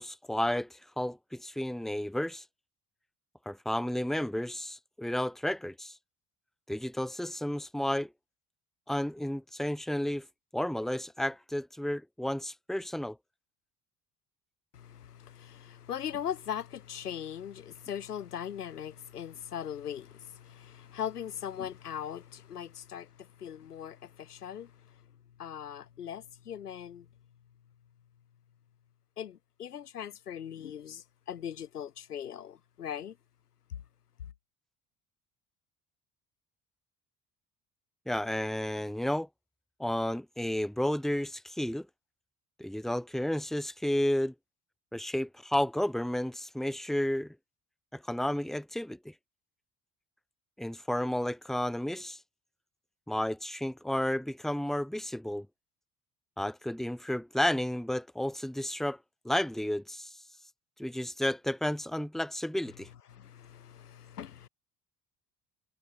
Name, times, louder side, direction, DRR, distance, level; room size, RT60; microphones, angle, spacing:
voice 1, 0.0-2.4 3.5-6.0 6.7-8.1 8.9-10.3 10.5-13.2 38.1-39.3 39.8-41.9 42.6-44.3 44.9-47.4 47.9-49.1 50.6-52.2 53.1-55.5 56.4-59.0 59.2-60.1 60.8-62.9, left 1 dB, ahead, 2.0 m, -32 dB
voice 2, 14.7-24.9 25.4-27.1 29.2-33.2 33.7-33.8 63.1-64.5, left 9 dB, 85° left, 2.9 m, -40 dB
figure-of-eight pair, 55°, 45 cm